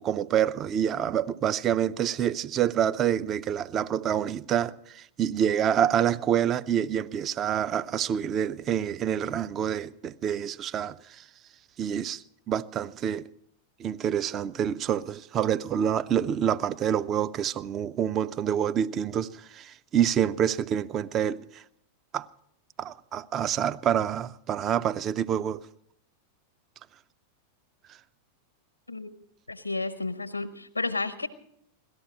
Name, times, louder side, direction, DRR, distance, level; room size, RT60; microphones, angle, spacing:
voice 1, 0.0-11.2 11.8-13.3 13.8-21.6 22.1-22.3 22.8-25.6, right 9 dB, 30° right, 0.5 m, -27 dB
voice 2, 29.5-31.3, left 3 dB, 80° left, 1.0 m, -31 dB
18.0 x 13.0 x 5.5 m
figure-of-eight pair, 90°, 0 cm